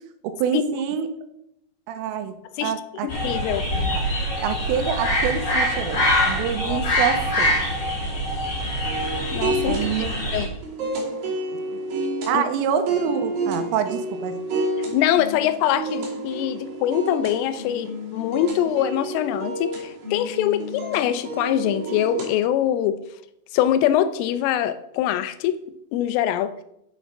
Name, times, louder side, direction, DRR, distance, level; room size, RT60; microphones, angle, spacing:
voice 1, 0.2-1.1 1.9-3.1 3.9-4.0 4.4-7.5 9.7-10.1 11.7-11.8 12.3-14.4, right 8 dB, 85° right, 8 dB, 3.4 m, -26 dB
voice 2, 3.0-3.6 6.6-6.8 9.3-10.1 10.3-10.5 12.3-12.4 14.9-23.0 23.5-25.6 25.9-26.5, left 11 dB, 85° left, 12 dB, 3.2 m, -23 dB
sound 1, 3.1-10.5, equal, 40° left, 4.4 m, -24 dB
sound 2, 8.8-22.4, right 2 dB, 50° right, 3.8 m, -30 dB
8.3 x 8.2 x 5.8 m, 0.79 s
omnidirectional pair, 5.7 m